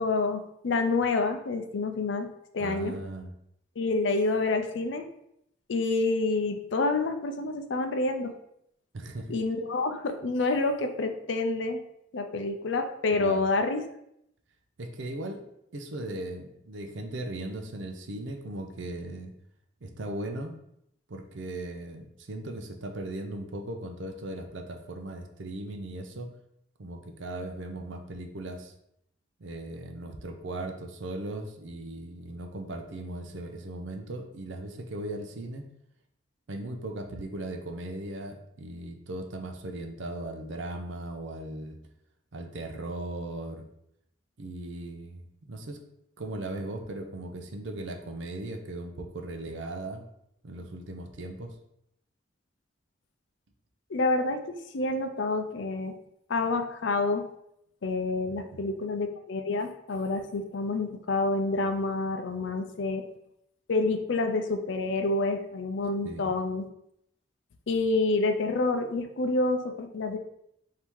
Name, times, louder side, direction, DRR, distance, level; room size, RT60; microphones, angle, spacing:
voice 1, 0.0-2.3 2.5-2.9 3.8-5.1 5.7-8.3 9.3-11.8 12.1-13.8 53.9-55.9 56.3-57.3 57.8-63.0 63.7-66.7 67.7-70.2, left 3 dB, 70° left, 6 dB, 0.5 m, -28 dB
voice 2, 2.6-3.3 8.9-9.4 13.1-13.4 14.8-15.4 15.7-19.3 19.8-20.5 21.1-26.3 26.8-28.7 29.4-35.6 36.5-41.8 42.3-43.7 44.4-45.8 46.2-50.1 50.4-51.5 58.3-58.7 66.0-66.3, right 1 dB, 75° right, 4 dB, 0.6 m, -38 dB
3.6 x 2.8 x 4.5 m, 0.76 s
head